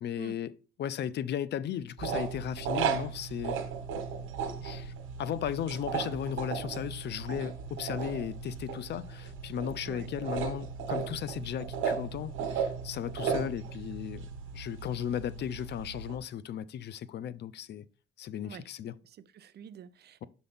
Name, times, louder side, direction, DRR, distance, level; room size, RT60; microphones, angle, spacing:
voice 1, 0.0-3.6 4.6-4.9 5.2-17.8 18.2-19.0, left 9 dB, 60° left, 0.4 m, -36 dB
sound 1, 2.0-16.2, right 6 dB, 85° right, 1.1 m, -36 dB
voice 2, 19.0-20.2, right 9 dB, 55° right, 0.5 m, -48 dB
6.5 x 4.0 x 3.5 m
cardioid pair, 90°, 20 cm